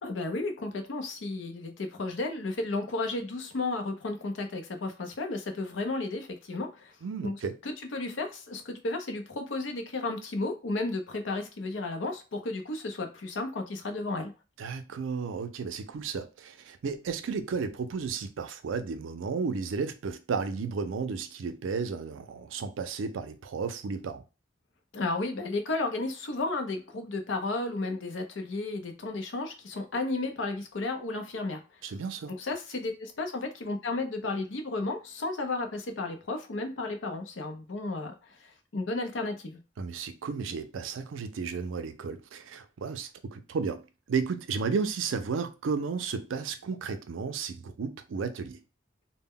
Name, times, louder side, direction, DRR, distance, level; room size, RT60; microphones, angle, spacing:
voice 1, 0.0-6.9 7.2-7.4 7.6-14.3 24.9-31.6 32.3-39.6, left 2 dB, 75° left, 0.6 m, -33 dB
voice 2, 7.0-7.6 14.6-24.2 31.8-32.3 39.8-43.8 44.1-48.6, right 5 dB, 90° right, 0.4 m, -33 dB
2.1 x 2.1 x 3.5 m
head